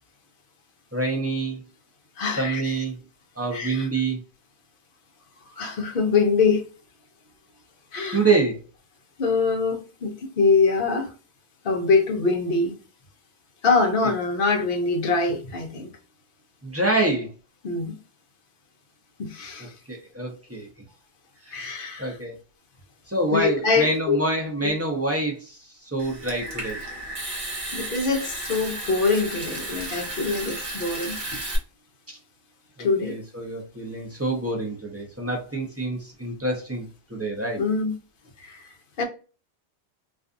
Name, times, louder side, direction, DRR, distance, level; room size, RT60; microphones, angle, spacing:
voice 1, 0.9-1.6 2.4-3.0 3.4-4.2 8.1-8.6 16.6-17.3 19.9-20.7 21.5-22.3 23.1-26.8 32.8-36.8 37.1-37.6, right 2 dB, 15° right, 0.6 m, -26 dB
voice 2, 2.2-2.8 3.5-3.9 5.6-6.7 7.9-8.2 9.2-11.1 11.6-12.7 13.6-15.9 17.6-18.0 19.2-19.8 21.5-22.2 23.3-24.2 24.6-24.7 27.7-31.4 32.8-33.2 37.6-38.0 38.4-39.0, left 4 dB, 60° left, 0.8 m, -24 dB
Water tap faucet / Sink (filling or washing) / Trickle dribble, 26.0-31.6, right 1 dB, 50° right, 1.0 m, -33 dB
2.5 x 2.3 x 2.4 m
omnidirectional pair, 1.1 m